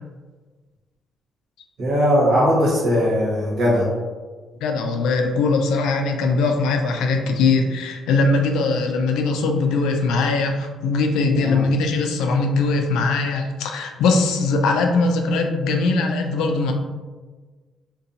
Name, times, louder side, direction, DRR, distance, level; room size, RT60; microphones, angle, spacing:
voice 1, 1.8-3.9 11.4-11.6, equal, 70° right, -6 dB, 1.1 m, -19 dB
voice 2, 4.6-16.7, left 3 dB, 90° left, 3 dB, 0.3 m, -21 dB
2.7 x 2.2 x 2.5 m, 1.4 s
cardioid pair, 105°, 0 cm